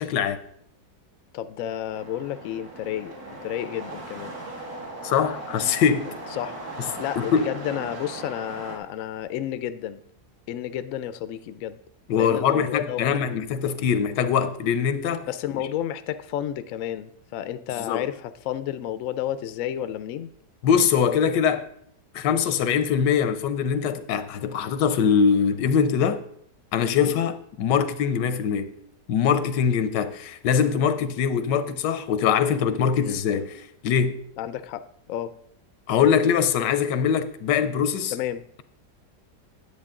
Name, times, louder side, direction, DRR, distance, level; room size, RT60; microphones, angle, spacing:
voice 1, 0.0-0.4 5.0-6.1 7.2-7.5 12.1-15.3 17.8-18.1 20.6-21.6 22.1-26.2 26.7-28.7 29.1-34.2 35.9-38.1, left 7 dB, 85° left, 1.3 m, -22 dB
voice 2, 1.3-3.1 3.4-4.3 6.3-6.6 7.0-10.0 10.5-11.8 12.1-13.1 15.3-20.3 26.9-27.1 33.0-33.2 34.4-34.8 35.1-35.3 38.1-38.4, left 11 dB, 70° left, 0.8 m, -31 dB
sound 1, 1.9-8.8, right 2 dB, 60° right, 2.4 m, -38 dB
10.5 x 8.2 x 3.7 m
omnidirectional pair, 1.8 m